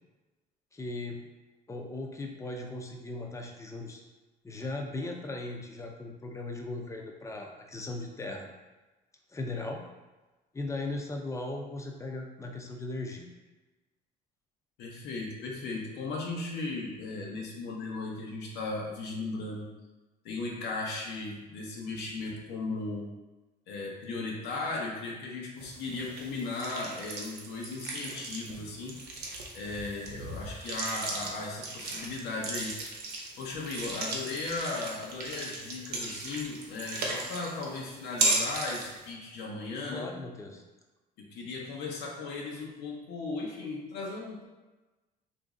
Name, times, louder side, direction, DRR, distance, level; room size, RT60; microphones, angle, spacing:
voice 1, 0.7-1.3 1.7-4.0 4.4-8.5 9.3-9.8 10.5-13.3 39.9-40.6, left 2 dB, 15° left, 2 dB, 0.5 m, -38 dB
voice 2, 14.8-19.7 20.2-23.1 23.7-29.0 29.5-32.7 33.4-40.1 41.2-44.4, left 3 dB, 85° left, -2 dB, 0.8 m, -36 dB
sound 1, 25.6-39.1, right 2 dB, 75° right, 0.8 m, -36 dB
3.0 x 2.6 x 3.6 m, 1.1 s
cardioid pair, 110°, 17 cm